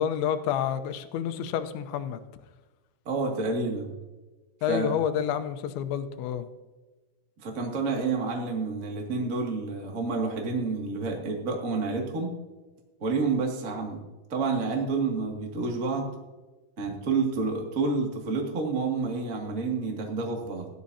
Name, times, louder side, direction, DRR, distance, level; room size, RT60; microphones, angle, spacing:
voice 1, 0.0-2.2 4.6-6.5, left 9 dB, 80° left, 3.1 m, -29 dB
voice 2, 3.0-3.9 4.7-5.0 7.4-12.3 13.0-14.0 14.3-16.1 16.8-20.7, right 4 dB, 40° right, 1.1 m, -29 dB
17.5 x 12.5 x 2.8 m
omnidirectional pair, 5.4 m